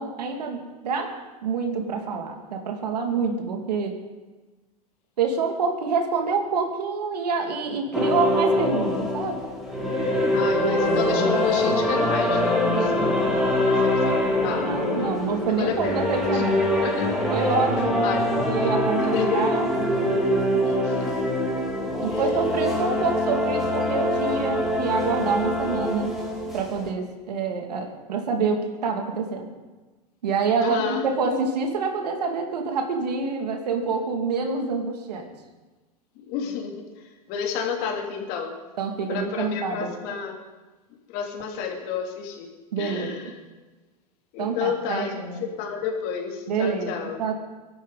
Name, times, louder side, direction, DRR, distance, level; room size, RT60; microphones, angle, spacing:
voice 1, 0.0-4.0 5.2-9.4 12.7-13.0 14.6-16.6 17.3-18.0 18.5-19.7 22.0-26.2 26.5-29.5 30.2-35.3 38.8-39.9 42.7-43.2 44.4-45.4 46.5-47.3, right 4 dB, 85° right, 3 dB, 2.7 m, -27 dB
sound 1, 7.9-26.9, left 1 dB, ahead, 3.3 m, -24 dB
voice 2, 10.3-13.2 13.5-15.1 15.6-16.4 16.8-17.2 18.0-18.5 19.0-19.5 20.7-21.0 22.1-22.2 30.6-31.0 36.2-38.5 39.1-40.4 41.1-42.5 42.8-43.3 44.3-47.2, left 6 dB, 50° left, 0 dB, 3.2 m, -31 dB
24.0 x 11.5 x 4.1 m, 1.2 s
hypercardioid pair, 120°, 20 cm